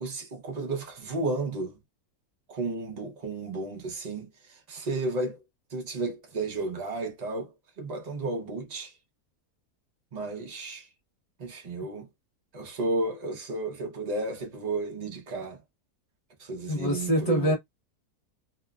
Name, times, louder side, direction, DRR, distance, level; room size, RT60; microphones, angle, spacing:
voice 1, 0.0-1.8 2.5-5.4 5.7-7.5 7.8-8.9 10.1-10.9 11.4-12.1 12.5-15.6 16.4-17.5, right 2 dB, 45° right, 0.5 m, -33 dB
voice 2, 16.7-17.6, equal, 35° left, 0.6 m, -25 dB
2.9 x 2.2 x 2.3 m
omnidirectional pair, 1.7 m